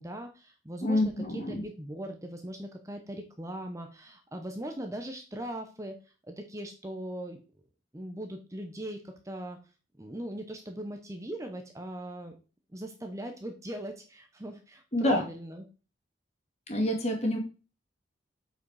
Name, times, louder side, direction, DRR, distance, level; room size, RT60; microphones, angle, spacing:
voice 1, 0.0-6.0 6.2-7.4 7.9-9.6 10.0-12.4 12.7-15.6, right 1 dB, 15° right, 5 dB, 0.9 m, -40 dB
voice 2, 0.8-1.6 14.9-15.2 16.7-17.4, left 1 dB, 35° left, 2 dB, 2.1 m, -27 dB
7.7 x 5.0 x 4.8 m, 0.33 s
head